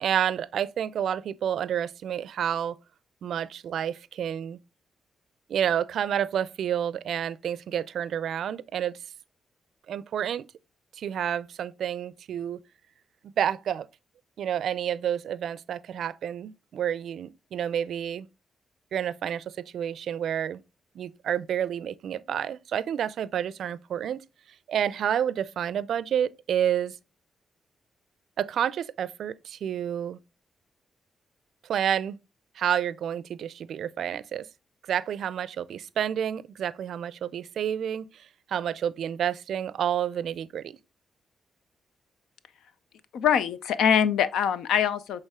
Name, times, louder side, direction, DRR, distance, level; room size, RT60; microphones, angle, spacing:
voice 1, 0.0-2.8 3.2-4.6 5.5-9.0 9.9-10.5 11.0-12.6 13.2-13.9 14.4-18.3 18.9-20.6 21.0-24.2 24.7-26.9 28.4-30.2 31.6-32.2 32.6-34.5 34.9-40.8, right 9 dB, 75° right, 0.4 m, -29 dB
voice 2, 43.1-45.2, left 8 dB, 85° left, 0.5 m, -23 dB
8.1 x 3.4 x 3.6 m
supercardioid pair, 55°, 0 cm